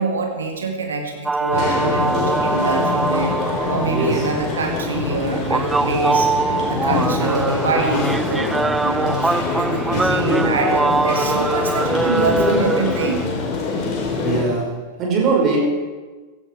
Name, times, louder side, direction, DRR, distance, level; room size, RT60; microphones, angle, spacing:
voice 1, 0.0-3.4 3.7-6.3 6.6-13.3, right 3 dB, 70° right, 4 dB, 2.1 m, -24 dB
sound 1, 1.3-13.3, right 3 dB, 10° right, 0.3 m, -23 dB
sound 2, 1.5-14.4, left 4 dB, 35° left, 4.0 m, -25 dB
voice 2, 3.9-4.3 7.0-7.4 14.2-15.6, right 4 dB, 30° right, -1 dB, 5.1 m, -21 dB
16.5 x 13.0 x 4.7 m, 1.3 s
figure-of-eight pair, 90°, 0 cm